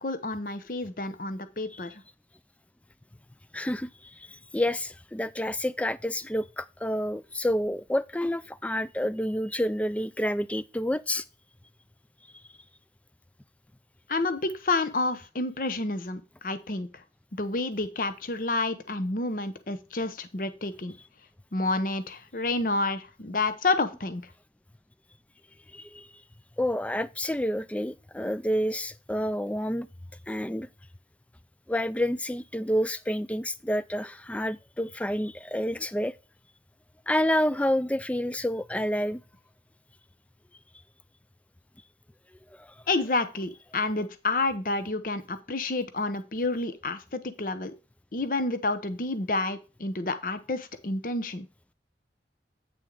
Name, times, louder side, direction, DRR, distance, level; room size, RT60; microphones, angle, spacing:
voice 1, 0.0-2.0 14.1-16.9 17.4-20.9 21.5-24.2 42.9-47.7 48.1-51.4, left 2 dB, 50° left, 0.8 m, -29 dB
voice 2, 3.5-11.2 12.3-12.4 25.7-26.1 26.6-29.9 30.3-30.7 31.7-36.1 37.1-39.2 42.6-42.7, equal, 10° left, 0.3 m, -29 dB
8.7 x 6.2 x 3.9 m
head